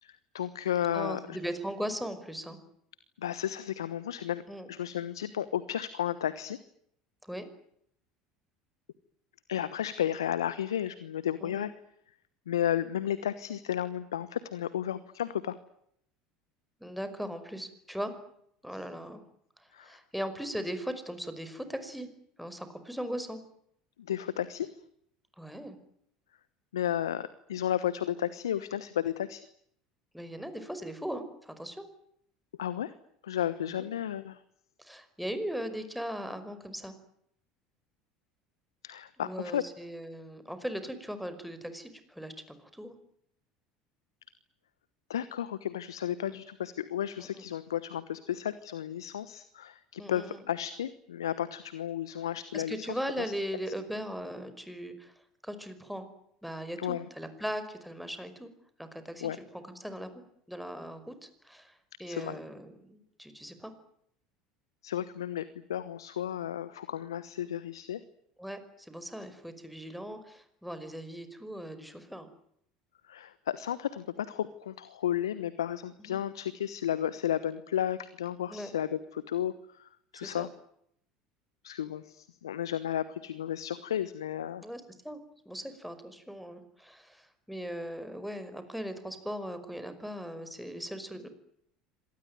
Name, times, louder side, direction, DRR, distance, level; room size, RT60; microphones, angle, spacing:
voice 1, 0.0-1.4 3.2-4.4 4.7-6.6 9.5-11.7 12.5-15.6 19.7-19.9 24.1-24.7 26.7-29.4 32.6-32.9 33.2-34.4 38.8-39.6 45.1-53.0 56.8-57.0 59.2-59.4 62.1-62.4 64.8-68.0 73.1-80.5 81.6-84.6, left 10 dB, 80° left, 16 dB, 1.1 m, -33 dB
voice 2, 0.9-2.6 4.5-4.7 7.2-7.5 11.4-11.7 16.8-18.1 18.6-19.2 19.6-22.1 22.4-23.4 25.4-25.8 30.1-31.8 33.6-33.9 34.8-37.0 39.2-43.0 46.2-46.4 47.2-47.4 50.0-50.4 52.5-55.1 55.4-56.1 56.4-58.5 58.8-63.7 68.4-72.3 76.0-76.2 78.5-78.7 80.1-80.5 84.6-85.2 85.5-91.3, equal, ahead, 10 dB, 5.3 m, -39 dB
26.5 x 19.5 x 9.4 m, 0.71 s
hypercardioid pair, 70°, 2 cm